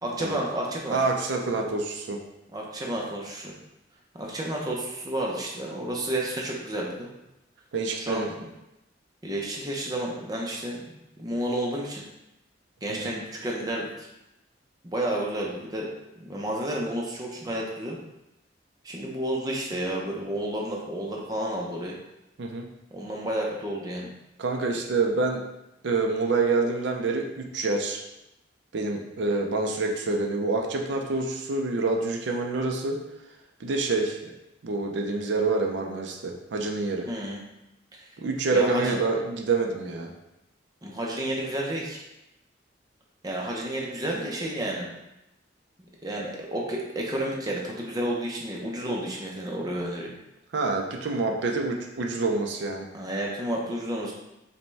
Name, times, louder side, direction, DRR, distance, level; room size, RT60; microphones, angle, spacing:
voice 1, 0.0-1.0 2.5-3.5 4.2-7.1 8.0-8.5 9.2-10.9 11.2-12.0 12.8-14.1 14.9-15.9 16.2-18.0 18.8-22.0 22.9-24.1 37.1-37.4 37.9-38.1 38.5-39.0 40.8-42.0 43.2-44.9 46.0-50.1 52.9-54.1, right 1 dB, 20° right, -2 dB, 0.5 m, -31 dB
voice 2, 0.9-2.2 7.7-8.3 12.9-13.1 22.4-22.7 24.4-25.4 25.8-28.0 28.7-33.0 33.6-34.3 34.6-37.1 38.2-40.1 50.5-52.9, right 3 dB, 65° right, 1 dB, 0.5 m, -27 dB
5.1 x 2.2 x 3.3 m, 0.91 s
head